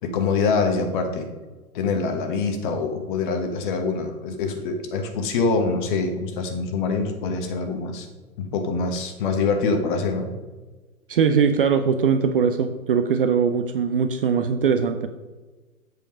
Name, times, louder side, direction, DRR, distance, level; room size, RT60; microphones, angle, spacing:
voice 1, 0.0-1.3 1.7-8.1 8.4-10.3, left 4 dB, 35° left, 6 dB, 1.2 m, -25 dB
voice 2, 11.1-15.1, right 6 dB, 40° right, 8 dB, 0.5 m, -21 dB
7.8 x 5.2 x 5.0 m, 1.3 s
figure-of-eight pair, 115°, 45 cm